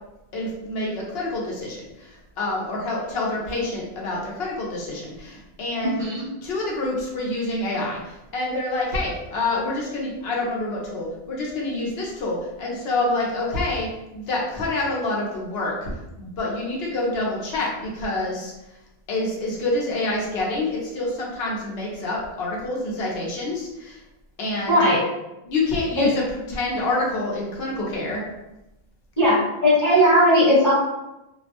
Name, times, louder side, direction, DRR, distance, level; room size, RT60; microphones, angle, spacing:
voice 1, 0.3-6.1 6.4-15.9 16.2-18.5 19.1-24.0 24.4-24.8 25.4-28.2, left 2 dB, 70° left, -3 dB, 1.0 m, -27 dB
voice 2, 24.7-25.0 26.0-26.1 29.2-30.7, equal, 20° left, -9 dB, 0.9 m, -17 dB
2.6 x 2.1 x 2.8 m, 0.94 s
omnidirectional pair, 1.1 m